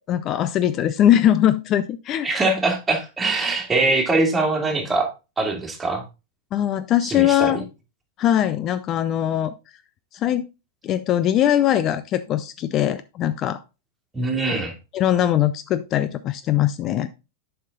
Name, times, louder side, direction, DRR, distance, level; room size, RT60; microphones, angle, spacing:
voice 1, 0.1-2.3 6.5-7.6 8.2-9.5 10.1-10.5 10.8-13.6 14.9-17.1, left 11 dB, 35° left, 13 dB, 0.4 m, -21 dB
voice 2, 2.2-5.1 5.4-6.0 7.0-7.6 14.1-14.7, right 2 dB, 15° right, 2 dB, 2.4 m, -22 dB
7.3 x 5.8 x 3.7 m, 0.28 s
figure-of-eight pair, 95°, 0 cm